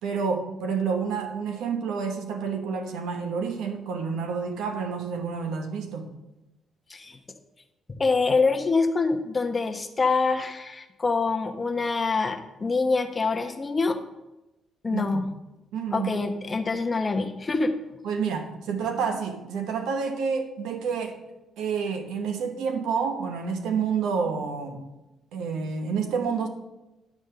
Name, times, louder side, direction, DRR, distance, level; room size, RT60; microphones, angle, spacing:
voice 1, 0.0-6.1 14.9-15.1 15.7-16.1 18.0-21.2 21.6-24.8 25.3-26.5, right 5 dB, 90° right, 6 dB, 1.1 m, -29 dB
voice 2, 7.9-14.0 14.8-15.3 15.9-17.7, left 4 dB, 30° left, 7 dB, 0.9 m, -25 dB
10.5 x 3.6 x 6.7 m, 0.98 s
cardioid pair, 90°, 0 cm